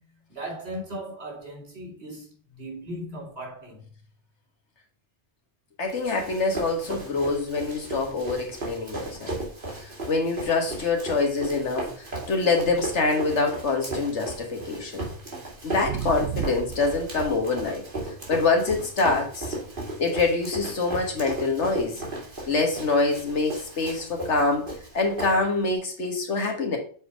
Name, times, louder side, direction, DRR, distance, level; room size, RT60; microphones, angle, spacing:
voice 1, 0.0-3.9, right 1 dB, 65° right, 3.3 m, -38 dB
voice 2, 5.8-9.4 9.8-15.1 15.6-17.8 18.3-19.5 20.0-22.0 22.5-26.8, left 3 dB, 80° left, 1.8 m, -25 dB
Run, 5.9-25.7, right 2 dB, 50° right, 2.5 m, -36 dB
sound 1, 15.8-17.4 18.3-18.5 24.3-24.4, right 10 dB, 85° right, 0.9 m, -33 dB
7.0 x 4.3 x 5.0 m
omnidirectional pair, 1.2 m